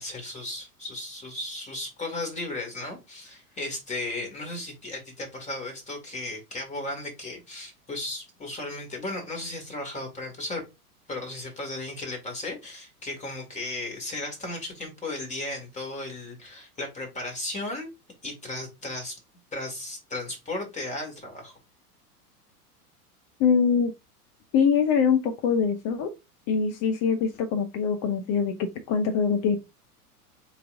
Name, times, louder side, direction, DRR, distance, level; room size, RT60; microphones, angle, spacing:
voice 1, 0.0-10.6 11.1-17.9 18.2-19.2 19.5-21.5, left 2 dB, 15° left, 2.0 m, -35 dB
voice 2, 23.4-23.9 24.5-26.1 26.5-29.6, left 6 dB, 35° left, 0.7 m, -23 dB
4.0 x 4.0 x 2.6 m
figure-of-eight pair, 90°, 46 cm